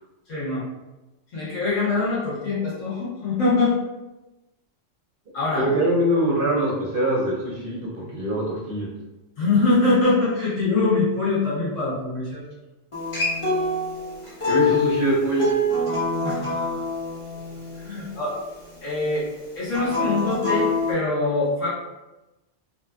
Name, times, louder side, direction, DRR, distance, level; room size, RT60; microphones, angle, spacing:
voice 1, 0.3-0.6 1.3-3.8 5.3-5.7 9.4-12.4 14.4-14.5 16.2-16.7 17.8-18.3 18.8-19.3 19.5-21.7, left 3 dB, 80° left, -8 dB, 1.4 m, -23 dB
voice 2, 5.5-8.9 14.5-15.5 17.9-18.0, right 1 dB, 55° right, -4 dB, 0.7 m, -23 dB
Acoustic guitar, 12.9-18.1 19.7-20.9, left 2 dB, 30° left, 0.7 m, -25 dB
2.8 x 2.4 x 2.2 m, 1.0 s
omnidirectional pair, 1.3 m